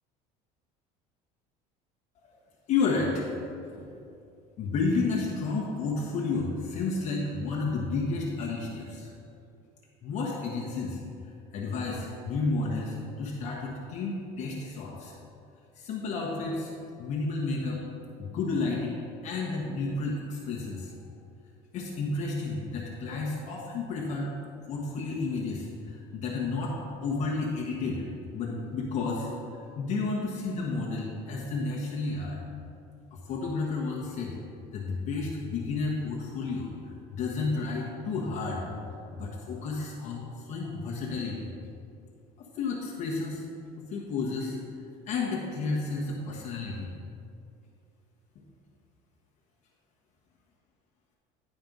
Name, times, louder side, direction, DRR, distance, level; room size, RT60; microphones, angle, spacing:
voice 1, 2.7-3.3 3.6-3.9 4.6-9.1 10.0-11.0 11.5-15.1 15.7-16.7 17.0-17.8 18.2-20.9 21.7-24.3 24.7-26.8 27.0-28.0 28.3-29.3 29.8-32.4 33.1-34.4 34.7-36.7 37.1-38.6 39.1-41.5 42.4-43.4 43.8-44.6 45.1-46.9 48.3-48.4, left 3 dB, 45° left, -4 dB, 1.3 m, -31 dB
10.5 x 4.3 x 5.4 m, 2.5 s
cardioid pair, 150°, 16 cm